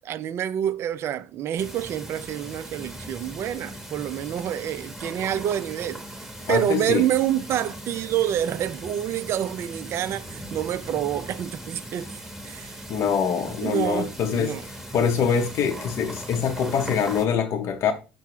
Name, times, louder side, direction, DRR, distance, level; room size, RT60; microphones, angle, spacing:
voice 1, 0.0-12.8 13.6-14.7, right 11 dB, 45° right, 0.3 m, -28 dB
sound 1, 1.6-17.3, right 1 dB, 5° right, 0.9 m, -39 dB
voice 2, 6.5-7.0 12.9-14.6 14.9-17.9, left 7 dB, 50° left, 0.6 m, -24 dB
5.7 x 2.0 x 4.6 m
hypercardioid pair, 65°, 6 cm